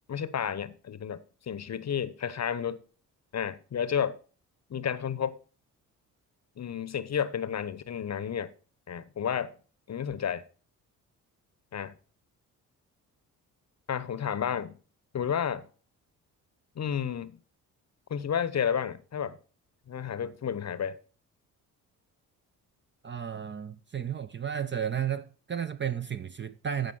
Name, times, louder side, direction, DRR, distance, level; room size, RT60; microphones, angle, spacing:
voice 1, 0.1-1.2 1.5-2.8 3.3-4.2 4.7-5.4 6.6-8.5 8.9-9.5 9.9-10.4 11.7-11.9 13.9-14.7 15.1-15.7 16.8-17.4 18.1-19.4 19.9-21.0, left 8 dB, 35° left, 0.9 m, -31 dB
voice 2, 23.0-26.9, right 8 dB, 25° right, 0.6 m, -33 dB
14.5 x 5.1 x 4.0 m
figure-of-eight pair, 45°, 45 cm